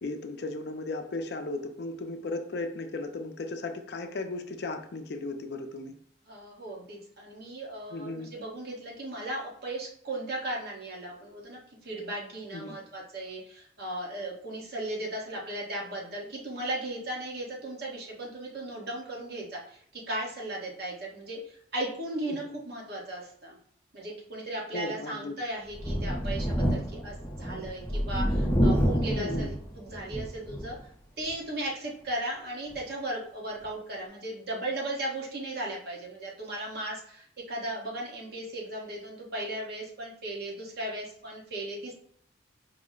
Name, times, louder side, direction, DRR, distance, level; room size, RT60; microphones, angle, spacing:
voice 1, 0.0-5.9 7.9-8.3 12.5-12.8 22.3-22.6 24.7-25.4 29.1-29.5, left 2 dB, 60° left, 6 dB, 0.4 m, -36 dB
voice 2, 6.3-23.6 23.9-30.8 31.2-41.9, right 1 dB, 55° right, -3 dB, 1.2 m, -36 dB
Thunder, 25.7-30.8 31.3-31.4 32.7-32.8, equal, 10° left, 0.6 m, -28 dB
4.8 x 2.1 x 3.7 m, 0.65 s
head